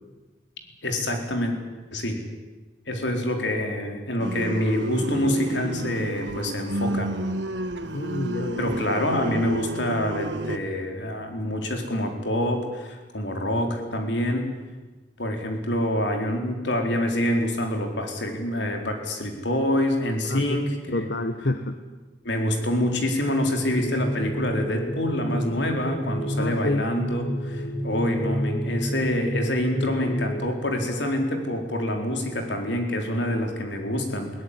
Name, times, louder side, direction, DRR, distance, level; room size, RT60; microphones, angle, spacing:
voice 1, 0.8-1.6 1.9-2.2 2.9-7.1 8.6-14.5 15.2-21.1 22.2-34.3, left 1 dB, 80° left, 4 dB, 4.1 m, -26 dB
sound 1, 4.2-10.6, right 1 dB, 80° right, 1.6 m, -30 dB
voice 2, 7.9-8.7 20.3-20.6 20.9-21.8 26.3-26.9, left 2 dB, 60° left, 8 dB, 1.2 m, -28 dB
sound 2, 23.6-30.5, equal, 25° left, 2.1 m, -30 dB
21.0 x 17.0 x 9.9 m, 1.2 s
head